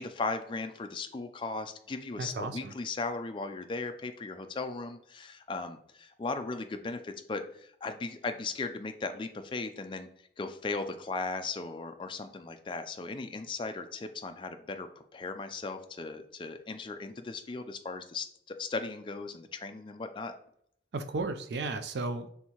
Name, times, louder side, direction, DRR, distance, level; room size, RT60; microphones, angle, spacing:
voice 1, 0.0-10.1 10.4-14.9 15.1-20.3, left 3 dB, 25° left, 7 dB, 0.3 m, -37 dB
voice 2, 2.2-2.7 20.9-22.3, right 3 dB, 65° right, 8 dB, 0.4 m, -34 dB
4.5 x 3.5 x 2.8 m, 0.68 s
head